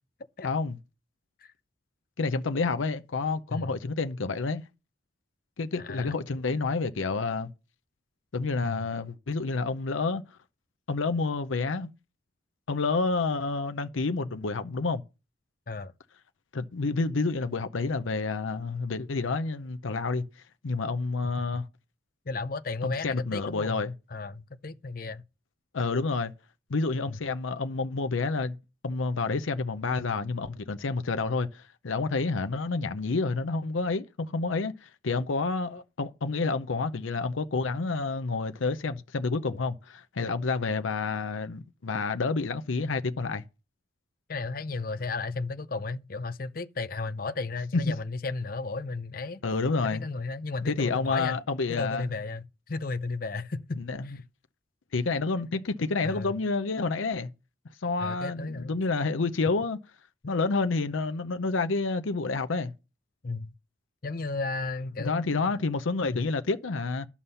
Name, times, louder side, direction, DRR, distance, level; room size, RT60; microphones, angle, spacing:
voice 1, 0.4-0.8 2.2-4.6 5.6-7.5 8.3-10.2 10.9-11.9 12.7-15.0 16.5-20.2 20.6-21.6 22.8-23.9 25.7-26.3 26.7-28.6 28.8-43.4 47.7-47.8 49.4-50.0 50.7-52.1 53.8-54.1 54.9-57.3 57.8-59.8 60.3-62.7 65.0-67.1, left 3 dB, 90° left, 0.7 m, -29 dB
voice 2, 5.8-6.1 8.6-8.8 15.7-15.9 21.4-21.5 22.3-23.8 24.1-25.2 27.1-27.2 44.3-49.4 49.9-51.4 51.7-54.2 56.0-56.3 58.0-58.7 60.2-60.3 63.2-63.5 64.0-65.5 66.1-66.2, left 3 dB, 45° left, 0.6 m, -34 dB
11.5 x 7.2 x 5.5 m
head